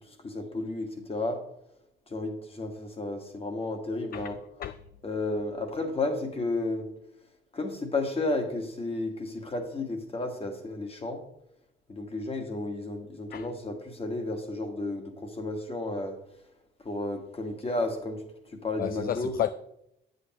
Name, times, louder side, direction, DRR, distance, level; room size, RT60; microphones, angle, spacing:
voice 1, 0.2-1.4 2.1-4.4 5.0-6.8 7.5-11.2 11.9-16.2 16.8-18.2 18.6-19.3, left 2 dB, 30° left, 1.6 m, -32 dB
voice 2, 18.8-19.5, left 11 dB, 50° left, 0.4 m, -31 dB
8.3 x 8.0 x 3.0 m
cardioid pair, 90°, 20 cm